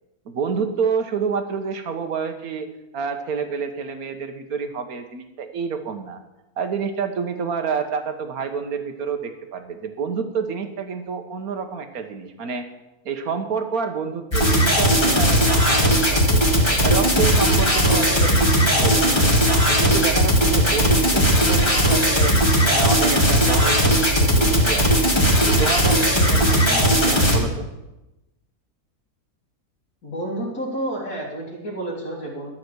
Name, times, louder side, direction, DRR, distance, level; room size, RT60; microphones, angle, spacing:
voice 1, 0.2-2.7 2.9-6.2 6.6-12.7 13.0-16.4 16.8-19.3 19.7-22.4 22.6-25.1 25.4-27.7, right 6 dB, 70° right, 7 dB, 1.6 m, -28 dB
sound 1, 14.3-27.4, equal, 15° left, 2.0 m, -18 dB
voice 2, 30.0-32.5, right 1 dB, 85° left, -6 dB, 2.7 m, -30 dB
12.0 x 5.9 x 8.0 m, 0.99 s
omnidirectional pair, 1.6 m